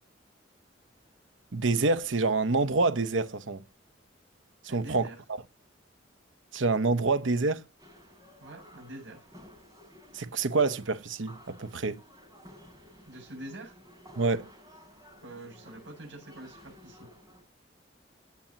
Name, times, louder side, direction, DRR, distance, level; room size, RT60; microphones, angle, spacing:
voice 1, 1.5-3.6 4.6-5.4 6.5-7.6 10.1-12.0 14.2-14.5, right 3 dB, 85° right, 0.9 m, -27 dB
voice 2, 4.7-5.2 8.4-9.2 13.1-13.7 15.2-17.1, right 1 dB, 65° right, 7.5 m, -45 dB
sound 1, 7.8-17.4, equal, 20° right, 6.7 m, -54 dB
16.5 x 8.6 x 2.9 m
head